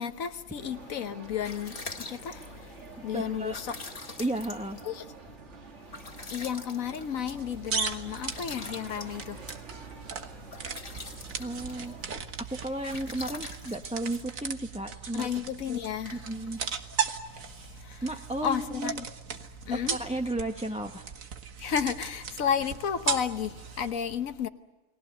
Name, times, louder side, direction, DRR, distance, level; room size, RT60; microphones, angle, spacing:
voice 1, 0.0-3.8 4.8-5.1 6.3-9.7 10.1-10.5 10.8-11.0 15.1-16.2 17.4-18.1 18.4-19.1 19.7-20.0 21.6-24.5, left 8 dB, 90° left, 1.5 m, -33 dB
sound 1, 0.6-12.2, right 4 dB, 60° right, 2.1 m, -49 dB
sound 2, 1.2-15.0, left 3 dB, 45° left, 1.9 m, -45 dB
voice 2, 3.1-3.6 4.2-4.8 11.4-11.9 12.4-15.3 16.1-16.6 18.0-19.0 19.7-21.0, right 1 dB, 5° right, 0.9 m, -33 dB
sound 3, 7.3-23.9, right 6 dB, 85° right, 1.8 m, -37 dB
30.0 x 20.0 x 7.9 m
omnidirectional pair, 1.4 m